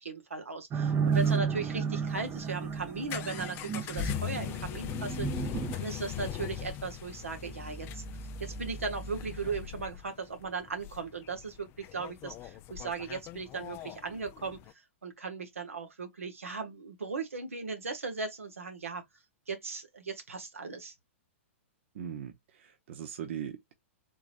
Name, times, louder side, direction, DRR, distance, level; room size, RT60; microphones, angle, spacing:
voice 1, 0.0-8.0 8.4-14.6 15.0-19.0 19.5-20.9, right 4 dB, 90° right, 1.1 m, -37 dB
sound 1, 0.7-5.7, right 6 dB, 25° right, 0.6 m, -32 dB
sound 2, 0.9-14.7, left 8 dB, 30° left, 0.4 m, -40 dB
voice 2, 21.9-23.7, right 9 dB, 60° right, 0.7 m, -40 dB
3.7 x 2.9 x 2.5 m
hypercardioid pair, 120°, 7 cm